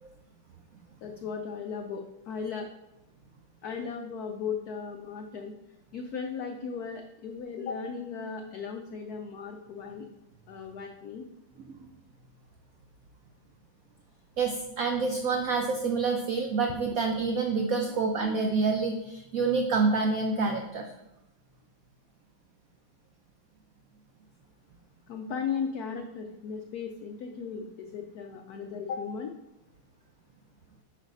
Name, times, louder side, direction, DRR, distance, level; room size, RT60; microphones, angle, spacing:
voice 1, 1.0-2.7 3.6-5.6 5.9-10.1 10.5-11.2 25.1-29.3, left 6 dB, 75° left, 4 dB, 0.8 m, -36 dB
voice 2, 14.4-20.9, right 4 dB, 80° right, 3 dB, 0.7 m, -27 dB
8.5 x 3.2 x 5.2 m, 0.93 s
omnidirectional pair, 2.2 m